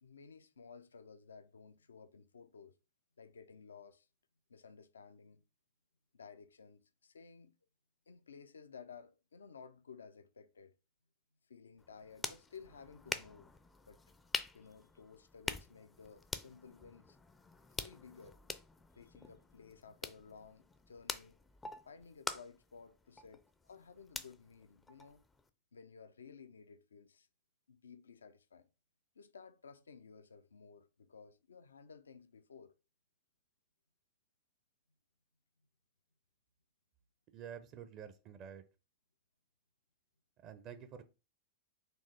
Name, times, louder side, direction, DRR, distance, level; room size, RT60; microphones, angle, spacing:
voice 1, 0.0-2.7 3.2-4.1 4.5-5.4 6.1-7.5 8.1-10.7 11.5-13.5 13.9-14.0 14.5-17.2 17.8-18.4 18.9-21.4 21.9-25.2 25.7-27.3 27.7-28.7 29.2-32.7, left 5 dB, 75° left, 0.4 m, -56 dB
sound 1, 11.8-25.5, left 3 dB, 10° left, 0.4 m, -46 dB
voice 2, 37.3-38.6 40.4-41.0, right 8 dB, 40° right, 0.5 m, -49 dB
4.4 x 3.0 x 3.2 m
figure-of-eight pair, 95°, 0 cm